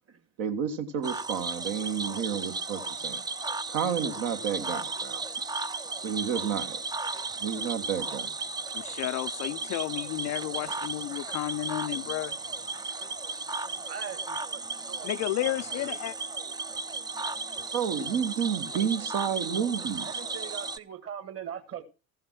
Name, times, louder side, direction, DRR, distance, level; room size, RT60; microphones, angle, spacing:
voice 1, 0.4-3.2 3.7-5.2 6.0-6.8 7.4-8.3 17.7-20.1, right 8 dB, 60° right, 1.5 m, -30 dB
Cricket / Frog, 1.0-20.8, right 3 dB, 10° right, 0.5 m, -35 dB
voice 2, 8.7-12.4 15.0-16.1, left 16 dB, 45° left, 0.5 m, -32 dB
voice 3, 13.9-16.0 20.0-21.8, right 8 dB, 35° right, 1.8 m, -42 dB
14.5 x 5.7 x 5.9 m
figure-of-eight pair, 60°, 40 cm